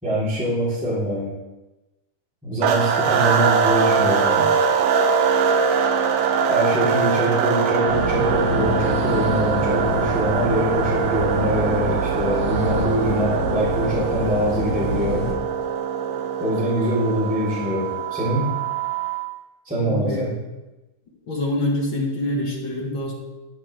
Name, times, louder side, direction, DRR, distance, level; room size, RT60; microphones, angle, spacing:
voice 1, 0.0-1.3 2.4-4.5 6.5-15.3 16.4-18.5 19.6-20.3, right 1 dB, ahead, -8 dB, 3.2 m, -23 dB
sound 1, 2.6-19.3, right 6 dB, 80° right, 2.4 m, -22 dB
sound 2, 7.9-15.3, left 1 dB, 70° left, 0.9 m, -28 dB
voice 2, 19.8-20.3 21.3-23.1, left 1 dB, 40° left, -2 dB, 2.2 m, -25 dB
11.5 x 10.0 x 3.4 m, 1.1 s
omnidirectional pair, 3.9 m